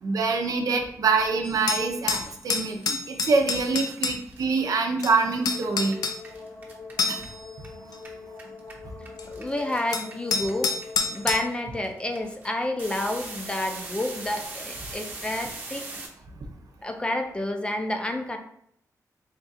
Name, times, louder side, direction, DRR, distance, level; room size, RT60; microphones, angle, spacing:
voice 1, 0.0-5.9 7.1-7.2, right 4 dB, 70° right, 3 dB, 0.6 m, -25 dB
sound 1, 1.4-4.2 5.0-5.1 5.4-6.2 7.0-7.4 7.9-8.0 9.2-9.3 9.9-11.4, left 5 dB, 85° left, 0.4 m, -27 dB
sound 2, 2.2-7.7 7.9-16.1, right 2 dB, 30° right, 0.9 m, -41 dB
sound 3, 5.4-11.4, left 4 dB, 50° left, 0.8 m, -44 dB
voice 2, 9.2-10.7 11.0-15.9 16.8-18.4, left 1 dB, 15° left, 4 dB, 0.5 m, -29 dB
3.7 x 2.4 x 4.1 m, 0.70 s
wide cardioid pair, 115°, 6 cm